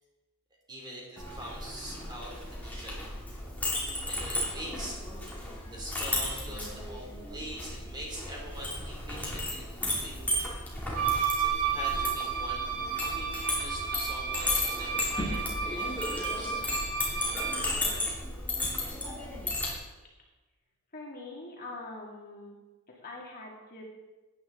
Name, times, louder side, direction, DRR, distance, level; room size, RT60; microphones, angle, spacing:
voice 1, 0.7-3.0 4.1-5.0 5.7-10.2 10.9-11.0 11.3-12.6 12.9-15.4 15.7-16.6, right 1 dB, 20° right, -2 dB, 3.0 m, -43 dB
Chink clink, 1.2-19.7, left 1 dB, 10° left, 2.9 m, -34 dB
Wind instrument woodwind instrument, 10.9-17.7, right 6 dB, 75° right, 2.3 m, -32 dB
voice 2, 20.9-22.6 22.9-23.8, left 2 dB, 45° left, -3 dB, 2.4 m, -43 dB
14.0 x 9.2 x 3.9 m, 1.2 s
head